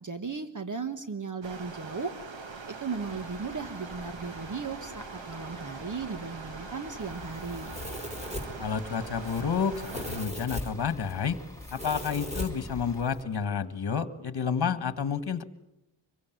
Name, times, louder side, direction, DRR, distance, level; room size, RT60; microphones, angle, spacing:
voice 1, 0.0-2.1 2.7-7.7, right 5 dB, 40° right, 9 dB, 1.3 m, -36 dB
Stream, 1.4-10.3, right 4 dB, 70° right, 2.2 m, -43 dB
Bus / Idling, 3.0-13.0, left 2 dB, 5° left, 3.8 m, -50 dB
Domestic sounds home sounds, 7.0-13.2, left 1 dB, 15° right, 4.4 m, -39 dB
voice 2, 8.6-11.4 11.7-15.4, left 6 dB, 55° left, 13 dB, 1.6 m, -30 dB
26.0 x 23.0 x 9.2 m, 0.90 s
wide cardioid pair, 155°, 47 cm